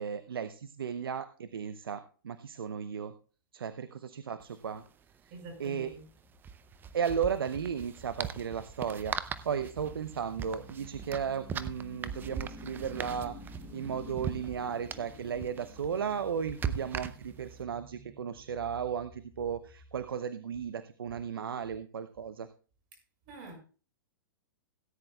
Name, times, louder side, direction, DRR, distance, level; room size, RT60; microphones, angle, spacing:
voice 1, 0.0-3.1 3.5-4.8 5.2-5.3 5.6-5.9 6.9-9.2 9.4-22.5, right 7 dB, 80° right, 0.8 m, -35 dB
sound 1, 4.4-4.5 4.7-4.9 6.3-17.6, right 7 dB, 15° right, 0.6 m, -40 dB
voice 2, 5.3-6.0 23.2-23.5, right 2 dB, 45° right, 6.2 m, -46 dB
sound 2, 5.8-20.0, equal, 5° left, 4.4 m, -51 dB
17.5 x 9.9 x 2.3 m
hypercardioid pair, 125°, 12 cm